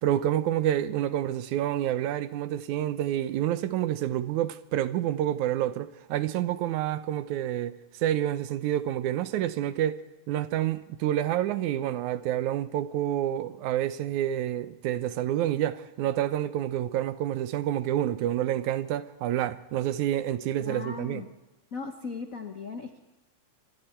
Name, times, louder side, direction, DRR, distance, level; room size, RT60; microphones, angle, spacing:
voice 1, 0.0-10.0 10.3-21.2, right 12 dB, 85° right, 2.2 m, -28 dB
voice 2, 20.6-21.3 21.7-23.0, left 4 dB, 70° left, 0.7 m, -37 dB
26.5 x 24.5 x 4.5 m
omnidirectional pair, 3.3 m